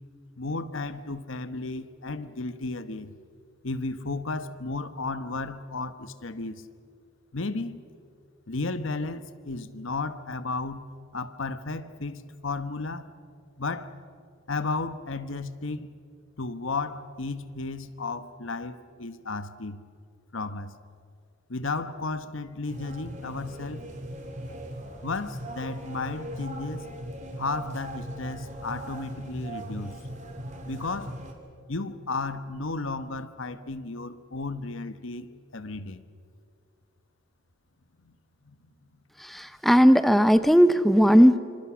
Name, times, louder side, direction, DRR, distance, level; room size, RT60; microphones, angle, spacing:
voice 1, 0.4-3.1 3.6-6.6 7.3-7.8 8.5-10.9 11.1-13.1 13.6-13.9 14.5-16.0 16.4-19.8 20.3-20.7 21.5-23.9 25.0-26.9 27.4-30.0 30.6-31.1 31.7-36.0 38.0-38.1 38.4-38.6, left 3 dB, 70° left, 1.2 m, -33 dB
sound 1, 22.7-31.3, right 1 dB, 35° right, 2.9 m, -39 dB
voice 2, 39.2-41.4, equal, ahead, 0.6 m, -17 dB
27.5 x 26.0 x 6.2 m
head